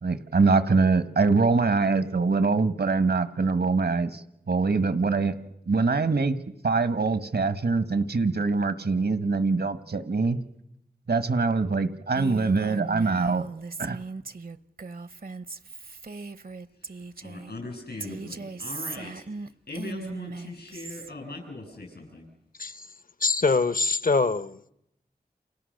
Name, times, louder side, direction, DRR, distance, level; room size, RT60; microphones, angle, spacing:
voice 1, 0.0-5.3 5.7-6.4 6.6-10.4 11.1-13.4 13.8-14.0, right 4 dB, 80° right, 11 dB, 1.5 m, -24 dB
Female speech woman speaking, 12.1-17.5 18.0-21.1, right 3 dB, 60° right, 0.9 m, -38 dB
voice 2, 16.8-19.2 19.7-22.3, left 2 dB, 85° left, 2 dB, 7.9 m, -40 dB
voice 3, 23.2-24.6, left 4 dB, 55° left, 15 dB, 0.9 m, -24 dB
29.5 x 28.5 x 6.6 m, 0.83 s
wide cardioid pair, 45°, 17 cm